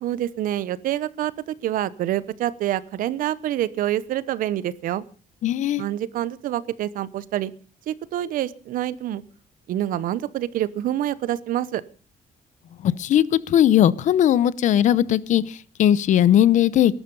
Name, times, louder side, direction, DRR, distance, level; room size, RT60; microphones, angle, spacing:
voice 1, 0.0-5.0 5.8-7.5 7.9-9.2 9.7-11.8, right 12 dB, 85° right, 0.9 m, -27 dB
voice 2, 5.4-5.9 12.8-17.0, left 11 dB, 60° left, 0.8 m, -19 dB
20.5 x 11.5 x 5.4 m
cardioid pair, 180°, 14 cm